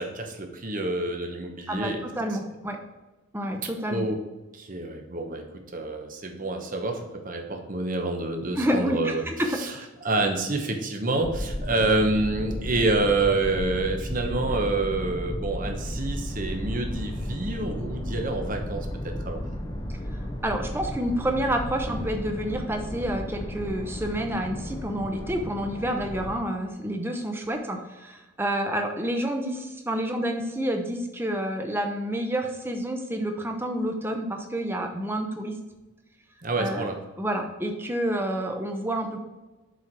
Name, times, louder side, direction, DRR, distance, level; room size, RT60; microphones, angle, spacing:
voice 1, 0.0-2.1 3.9-4.2 4.5-9.7 10.0-19.4 36.4-37.0, right 2 dB, 40° right, 4 dB, 1.0 m, -28 dB
voice 2, 1.7-2.8 3.3-4.1 8.5-9.9 20.4-35.5 36.5-36.9 37.2-39.2, right 1 dB, 10° right, 4 dB, 0.8 m, -29 dB
sound 1, 11.2-26.4, equal, 20° left, 0.6 m, -34 dB
6.9 x 4.6 x 4.6 m, 1.1 s
head